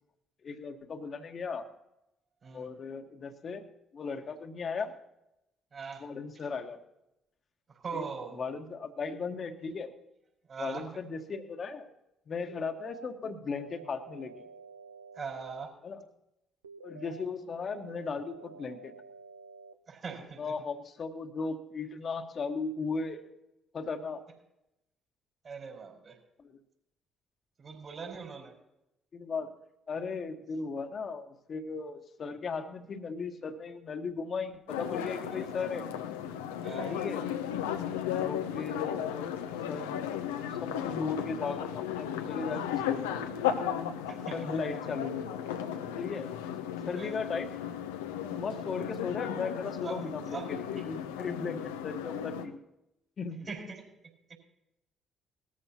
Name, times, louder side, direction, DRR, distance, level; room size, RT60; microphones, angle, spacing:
voice 1, 0.4-1.7 2.5-3.6 3.9-5.0 6.0-6.8 7.9-8.0 8.4-9.9 10.6-11.9 12.3-14.4 15.8-16.0 16.8-18.9 20.4-23.3 23.7-24.2 26.4-26.6 29.1-29.5 29.9-35.9 36.9-37.2 38.2-39.3 39.7-43.1 44.3-45.3 46.0-46.3 46.8-47.5 48.2-52.6 53.2-53.5, left 4 dB, 45° left, 7 dB, 1.4 m, -37 dB
voice 2, 5.7-6.1 7.7-8.4 10.5-10.9 15.1-15.7 19.9-20.5 25.4-26.2 27.6-28.6 35.3-35.5 36.6-37.0 38.0-38.3 44.1-44.4 46.9-47.2 49.8-50.5 50.8-50.9 53.4-53.8 54.3-54.4, right 5 dB, 45° right, 1 dB, 4.8 m, -41 dB
sound 1, 12.5-13.1 13.6-15.6 16.6-17.2 17.7-19.7, right 4 dB, 90° right, 0.5 m, -50 dB
sound 2, 34.7-52.5, left 9 dB, 80° left, 0.8 m, -35 dB
19.5 x 14.0 x 2.9 m, 0.87 s
hypercardioid pair, 45°, 0 cm